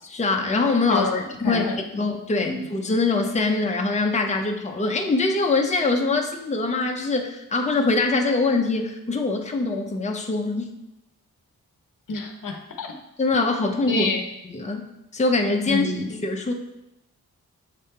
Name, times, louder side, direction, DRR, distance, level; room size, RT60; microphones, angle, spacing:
voice 1, 0.0-1.1 1.4-1.7 2.0-10.7 13.2-14.1 14.4-14.9 15.1-16.5, left 3 dB, 20° left, 3 dB, 0.7 m, -23 dB
voice 2, 0.9-1.8 2.4-2.7 12.1-12.9 13.9-14.2 15.7-16.1, left 4 dB, 60° left, 4 dB, 0.9 m, -27 dB
6.7 x 3.4 x 4.3 m, 0.90 s
cardioid pair, 55°, 36 cm